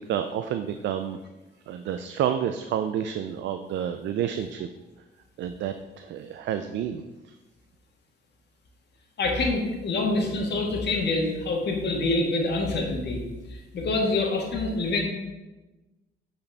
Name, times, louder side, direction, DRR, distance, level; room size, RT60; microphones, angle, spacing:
voice 1, 0.1-1.2 1.7-4.7 5.4-7.0, right 9 dB, 70° right, 9 dB, 0.4 m, -29 dB
voice 2, 9.2-13.2 13.7-15.0, left 2 dB, 60° left, 0 dB, 1.5 m, -26 dB
8.5 x 4.2 x 3.4 m, 1.1 s
cardioid pair, 90°, 20 cm